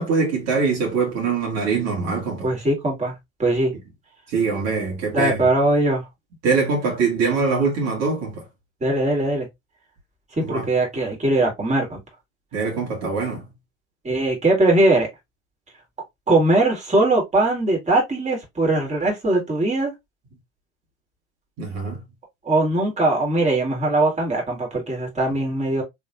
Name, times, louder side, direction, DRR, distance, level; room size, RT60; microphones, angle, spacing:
voice 1, 0.0-2.5 4.3-5.5 6.4-8.5 10.4-10.7 12.5-13.5 21.6-22.0, right 4 dB, 55° right, 2.1 m, -23 dB
voice 2, 2.4-3.1 3.4-3.7 5.1-6.0 8.8-9.5 10.4-12.0 14.0-15.1 16.3-19.9 22.4-25.8, right 2 dB, 20° right, 2.4 m, -20 dB
3.5 x 3.5 x 2.6 m
hypercardioid pair, 85°, 33 cm